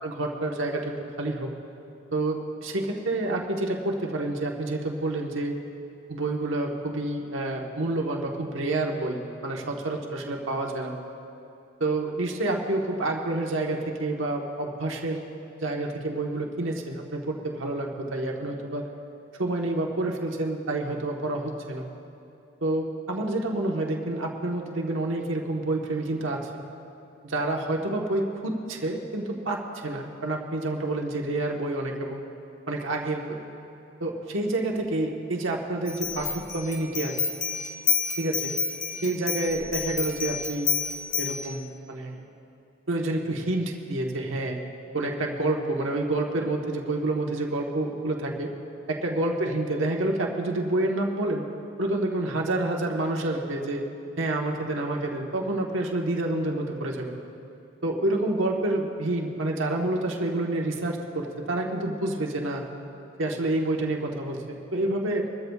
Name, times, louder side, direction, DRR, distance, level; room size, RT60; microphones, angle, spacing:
voice 1, 0.0-1.5 2.1-5.6 6.1-10.9 11.8-15.2 15.6-18.9 19.4-21.8 22.6-26.4 27.2-32.2 32.7-33.4 34.0-37.1 38.2-38.5 39.0-40.7 41.2-42.2 42.9-44.6 44.9-48.5 48.9-51.4 51.8-53.8 54.2-57.2 57.8-62.6 63.2-65.3, right 2 dB, 85° right, 0 dB, 1.2 m, -28 dB
sound 1, 35.9-41.5, left 6 dB, 40° left, 1.1 m, -29 dB
22.5 x 13.5 x 2.4 m, 2.7 s
head